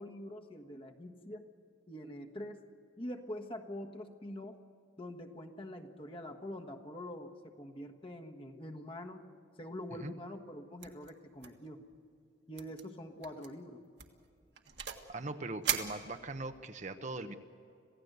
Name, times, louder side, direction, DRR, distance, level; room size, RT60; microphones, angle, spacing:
voice 1, 0.0-1.5 1.9-2.6 3.0-4.6 5.0-9.2 9.6-11.8 12.5-13.8, left 1 dB, 25° left, 3 dB, 1.4 m, -45 dB
sound 1, 10.8-11.1 11.4-11.7 11.9-12.0 12.6-12.8 13.2-13.5 14.0-15.1 15.6-16.6, right 8 dB, 60° right, 1.7 m, -38 dB
voice 2, 15.1-17.4, right 2 dB, 40° right, 8 dB, 0.9 m, -40 dB
27.0 x 16.5 x 8.1 m, 2.5 s
head